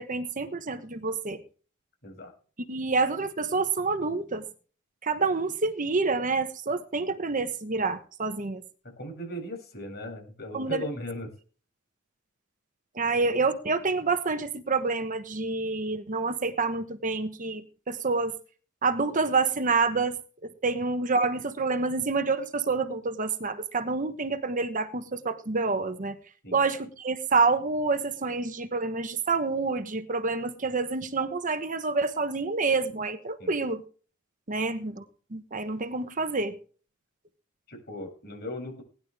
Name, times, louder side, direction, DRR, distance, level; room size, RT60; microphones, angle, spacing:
voice 1, 0.0-1.4 2.7-4.4 5.0-8.6 10.5-10.8 12.9-18.3 18.8-20.2 20.4-26.2 26.5-33.8 34.5-35.0 35.3-36.5, right 4 dB, 40° right, 1.1 m, -28 dB
voice 2, 2.0-2.3 9.0-11.3 26.4-26.6 33.4-33.5 37.7-38.8, left 1 dB, 50° left, 7.4 m, -37 dB
18.5 x 11.0 x 3.5 m
head